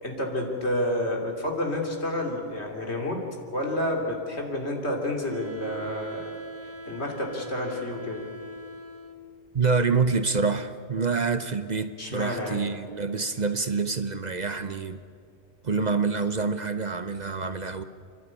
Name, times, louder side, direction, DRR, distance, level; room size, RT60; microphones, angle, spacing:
voice 1, 0.0-3.2 3.5-6.2 6.9-8.2 12.0-12.6, left 1 dB, 75° left, 1 dB, 3.5 m, -29 dB
Wind instrument woodwind instrument, 5.3-9.4, right 1 dB, 15° right, 1.3 m, -41 dB
voice 2, 9.5-15.0 15.6-17.8, right 4 dB, 45° right, 10 dB, 0.9 m, -27 dB
29.5 x 12.0 x 9.8 m, 2.2 s
omnidirectional pair, 1.1 m